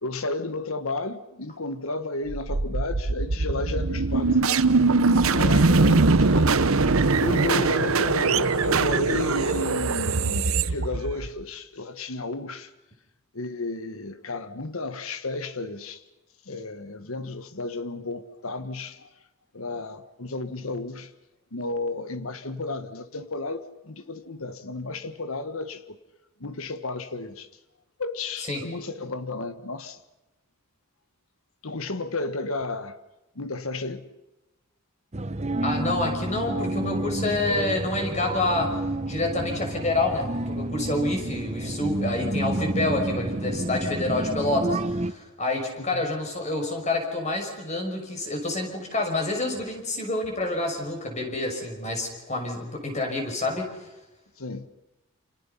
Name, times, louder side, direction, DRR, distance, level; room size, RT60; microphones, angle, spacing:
voice 1, 0.0-4.6 5.3-6.7 7.2-12.7 13.3-16.0 16.5-19.1 19.5-21.1 21.5-25.8 26.4-27.5 28.0-30.0 31.6-33.0 33.3-34.1 54.4-54.7, left 2 dB, 70° left, 1.4 m, -32 dB
sound 1, 2.3-11.4, right 3 dB, 75° right, 1.0 m, -22 dB
sound 2, 35.1-45.1, right 1 dB, 30° right, 0.9 m, -30 dB
voice 2, 35.6-38.8 39.0-53.9, left 2 dB, 30° left, 5.9 m, -28 dB
29.0 x 27.5 x 5.7 m
head